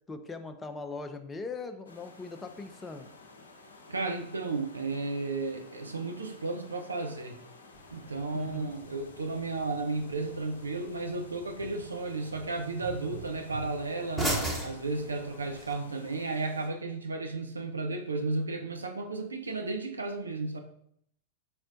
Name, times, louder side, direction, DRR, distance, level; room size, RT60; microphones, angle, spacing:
voice 1, 0.1-3.1 8.3-8.7, left 3 dB, 15° left, 8 dB, 0.4 m, -40 dB
sound 1, 1.9-16.7, left 3 dB, 70° left, 0.5 m, -53 dB
voice 2, 3.9-7.4 7.9-14.4 14.6-20.6, right 3 dB, 75° right, 4 dB, 0.5 m, -33 dB
sound 2, 7.7-15.7, right 1 dB, 5° right, 1.0 m, -39 dB
4.3 x 4.2 x 2.6 m, 0.68 s
figure-of-eight pair, 90°, 0 cm